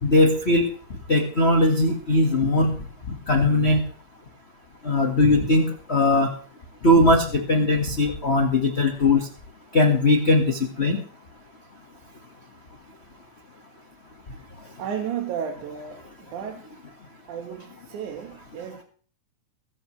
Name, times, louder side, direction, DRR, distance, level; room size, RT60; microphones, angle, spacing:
voice 1, 0.0-0.7 1.1-3.8 4.8-6.3 6.8-9.3 9.7-11.0 14.6-14.7, left 2 dB, 35° left, 1.0 m, -20 dB
voice 2, 14.8-16.7 17.3-18.8, right 8 dB, 70° right, 2.7 m, -33 dB
22.0 x 12.5 x 3.2 m
omnidirectional pair, 3.7 m